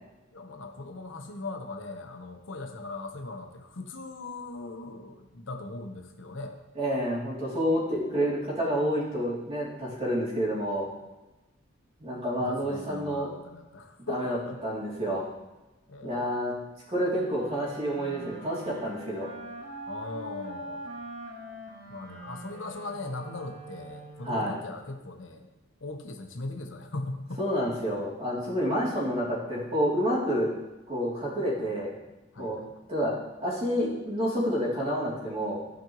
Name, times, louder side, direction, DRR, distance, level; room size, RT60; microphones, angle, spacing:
voice 1, 0.3-6.6 12.4-14.6 15.9-16.4 19.9-21.0 21.9-25.5 25.8-27.6 32.3-32.7, left 2 dB, 85° left, 4 dB, 1.0 m, -39 dB
voice 2, 6.8-10.9 12.0-13.3 14.1-14.4 14.6-15.2 16.0-16.5 16.9-19.3 24.2-24.6 27.4-30.5 30.9-31.9 32.4-32.6 32.9-35.6, equal, 30° right, -6 dB, 2.9 m, -29 dB
Wind instrument woodwind instrument, 17.1-24.6, right 1 dB, 75° right, 2.3 m, -43 dB
15.0 x 5.2 x 3.1 m, 1.1 s
head